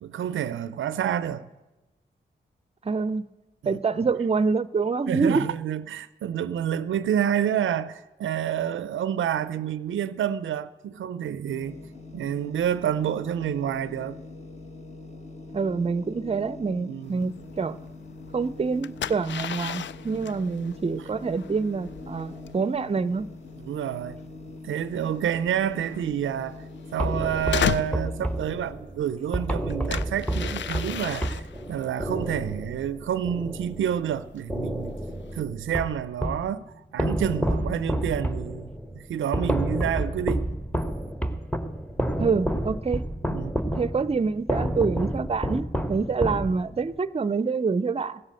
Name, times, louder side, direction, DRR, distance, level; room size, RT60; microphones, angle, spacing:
voice 1, 0.0-1.5 3.6-3.8 5.1-11.8 12.1-14.2 16.9-17.3 23.6-24.2 24.6-26.6 26.9-31.4 31.7-35.0 35.3-36.6 36.9-38.7 38.9-40.5 43.3-43.6, right 9 dB, 85° right, 0.5 m, -28 dB
voice 2, 2.8-3.2 3.7-5.5 15.5-17.8 18.3-23.3 42.2-43.0 43.8-48.2, right 4 dB, 30° right, 0.5 m, -26 dB
sound 1, 11.5-28.7, left 2 dB, 35° left, 1.5 m, -43 dB
sound 2, 17.0-35.4, left 10 dB, 65° left, 0.4 m, -37 dB
sound 3, 27.0-34.1 34.5-36.5 37.0-46.9, right 1 dB, 5° left, 1.1 m, -30 dB
16.0 x 7.5 x 7.7 m
cardioid pair, 45°, 20 cm